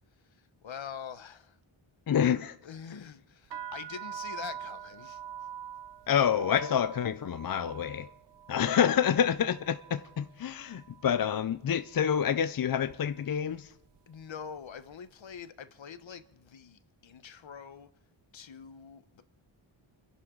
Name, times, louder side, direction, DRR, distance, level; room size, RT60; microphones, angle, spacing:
voice 1, 0.2-1.6 2.6-5.2 8.6-8.9 14.1-17.9 18.3-19.2, left 7 dB, 65° left, 1.1 m, -45 dB
voice 2, 2.1-2.6 6.1-8.1 8.5-13.7, left 8 dB, 45° left, 0.5 m, -28 dB
sound 1, 3.4-11.4 11.6-12.3 12.9-13.2 13.5-14.9, right 9 dB, 60° right, 0.6 m, -45 dB
28.5 x 11.0 x 3.9 m
wide cardioid pair, 135°, 50 cm